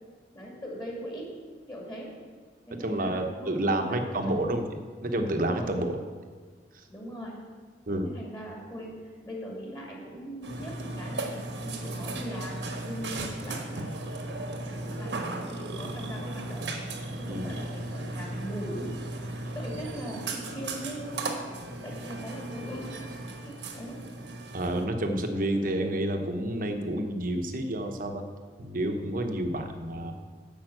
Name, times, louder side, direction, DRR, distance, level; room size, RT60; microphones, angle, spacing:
voice 1, 0.3-1.3 1.7-2.1 2.7-4.4 5.6-5.8 6.9-7.3 8.0-13.9 14.6-16.6 17.2-18.9 19.2-21.4 21.8-22.9 23.3-24.0, equal, 25° left, -2 dB, 2.2 m, -40 dB
voice 2, 2.8-6.0 6.7-6.8 7.9-8.1 13.2-13.3 17.3-17.6 19.4-19.5 24.5-28.2 28.6-30.1, right 1 dB, 50° right, 5 dB, 0.9 m, -29 dB
Burping eructation, 10.4-24.8, right 2 dB, 75° right, 1.2 m, -36 dB
8.9 x 5.7 x 7.7 m, 1.5 s
head